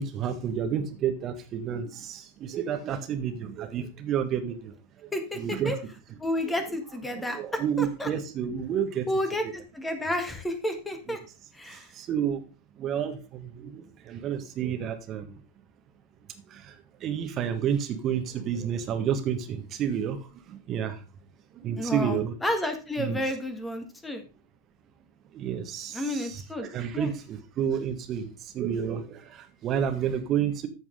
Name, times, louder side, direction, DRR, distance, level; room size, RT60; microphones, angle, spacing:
voice 1, 0.0-4.7 5.0-5.1 5.4-5.8 7.1-9.1 11.1-11.2 11.7-12.4 12.8-15.4 16.5-21.0 21.5-22.4 23.0-23.2 25.3-30.7, right 8 dB, 30° right, 6 dB, 1.6 m, -30 dB
voice 2, 5.1-5.8 6.2-8.1 9.1-11.2 11.5-11.9 21.8-24.2 25.9-26.7 26.9-27.1, left 1 dB, 10° left, 7 dB, 1.7 m, -31 dB
14.0 x 4.7 x 3.8 m, 0.31 s
figure-of-eight pair, 90°, 0 cm